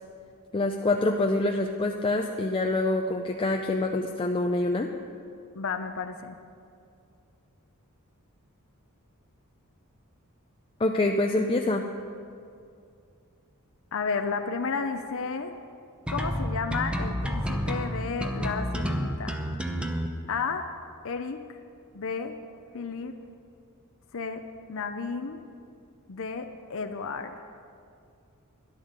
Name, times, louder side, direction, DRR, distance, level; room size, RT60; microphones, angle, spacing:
voice 1, 0.5-4.9 10.8-11.8, left 2 dB, 25° left, 2 dB, 0.5 m, -26 dB
voice 2, 5.5-6.4 13.9-15.5 16.1-19.4 20.3-20.7 21.0-21.4 21.9-22.4 22.7-23.2 24.1-25.4 26.1-27.3, left 5 dB, 65° left, 7 dB, 0.6 m, -32 dB
sound 1, 16.1-20.1, equal, 5° right, 0.8 m, -29 dB
13.0 x 10.5 x 6.6 m, 2.4 s
head